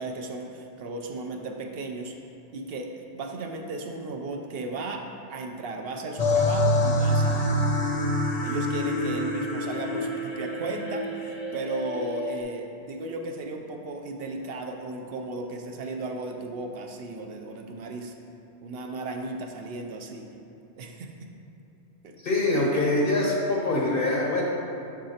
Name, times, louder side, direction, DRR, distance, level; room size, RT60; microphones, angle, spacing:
voice 1, 0.0-2.2 2.5-7.6 8.4-18.1 18.6-20.3 20.8-21.3 22.0-22.2 22.5-22.7, right 2 dB, 65° right, 3 dB, 0.7 m, -35 dB
sound 1, 6.2-12.4, left 1 dB, 40° left, 0.8 m, -26 dB
voice 2, 22.2-24.4, left 2 dB, 60° left, -3 dB, 1.0 m, -24 dB
6.6 x 6.2 x 2.8 m, 2.6 s
omnidirectional pair, 1.1 m